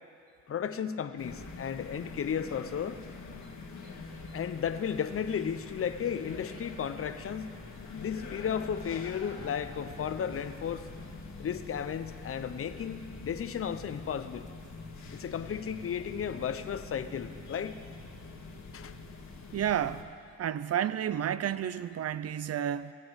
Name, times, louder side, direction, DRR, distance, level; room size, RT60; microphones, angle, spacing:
voice 1, 0.5-3.0 4.3-7.5 8.0-10.9 11.4-14.5 15.1-17.8 18.7-18.9, left 8 dB, 45° left, 11 dB, 0.7 m, -34 dB
sound 1, 1.2-20.0, left 3 dB, 65° left, 1.9 m, -45 dB
voice 2, 19.5-20.1 20.4-22.9, right 10 dB, 55° right, 15 dB, 0.5 m, -31 dB
16.0 x 8.6 x 8.0 m, 2.4 s
cardioid pair, 85°, 31 cm